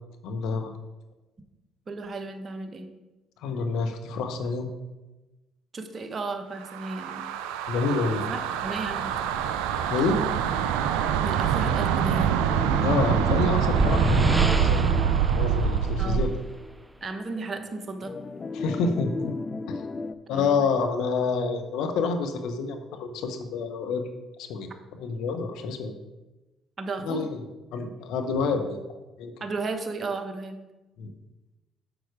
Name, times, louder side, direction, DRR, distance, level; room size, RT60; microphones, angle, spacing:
voice 1, 0.2-0.7 3.4-4.7 7.7-8.3 9.9-10.2 12.8-14.3 14.6-15.1 15.3-16.4 18.5-19.3 19.7-19.8 20.3-24.0 24.4-24.7 25.0-25.9 27.0-27.4 27.7-28.8 29.2-29.3 31.0-31.1, left 4 dB, 70° left, 6 dB, 1.0 m, -28 dB
voice 2, 1.9-2.9 5.7-7.3 8.3-9.1 11.2-12.4 16.0-16.3 17.0-18.2 20.3-20.7 26.8-27.3 29.4-30.6, right 3 dB, 40° right, 6 dB, 1.1 m, -34 dB
sound 1, 6.6-16.4, right 8 dB, 80° right, 0.5 m, -25 dB
sound 2, 12.5-16.8 17.2-17.3 18.0-20.1, left 4 dB, 30° left, 0.5 m, -35 dB
sound 3, 13.0-16.6, right 1 dB, 15° right, 0.6 m, -29 dB
6.9 x 6.0 x 4.8 m, 1.1 s
hypercardioid pair, 55°, 0 cm